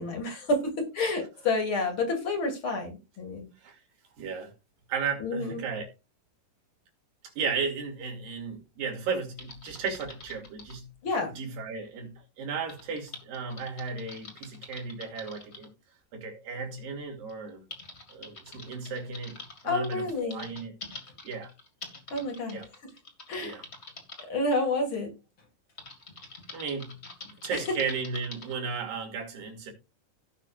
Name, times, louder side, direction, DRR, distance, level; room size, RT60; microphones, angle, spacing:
voice 1, 0.0-3.5 5.2-5.6 11.0-11.3 19.6-20.5 22.1-22.9 23.3-23.6 24.3-25.1 27.5-27.8, left 2 dB, 40° left, 2.6 m, -29 dB
voice 2, 4.2-4.5 4.9-5.9 7.4-10.9 11.3-15.7 16.1-17.7 18.1-19.4 19.6-20.7 21.2-21.5 22.5-22.6 23.4-23.6 26.5-27.0 27.3-29.7, right 5 dB, 80° right, 4.3 m, -35 dB
Typing, 9.4-10.8 12.7-15.7 16.7-16.8 17.3-24.2 25.8-28.5, left 2 dB, 25° left, 1.6 m, -46 dB
17.0 x 6.0 x 2.5 m
omnidirectional pair, 3.9 m